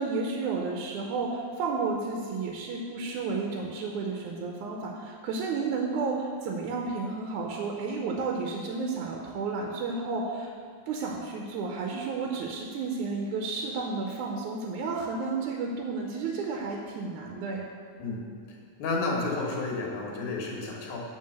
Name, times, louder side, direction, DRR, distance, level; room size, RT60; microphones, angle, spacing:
voice 1, 0.0-10.5 10.9-17.6, right 4 dB, 75° right, 0 dB, 2.1 m, -32 dB
voice 2, 18.8-21.0, left 3 dB, 70° left, -3 dB, 2.8 m, -31 dB
9.5 x 4.4 x 6.6 m, 2.2 s
omnidirectional pair, 3.7 m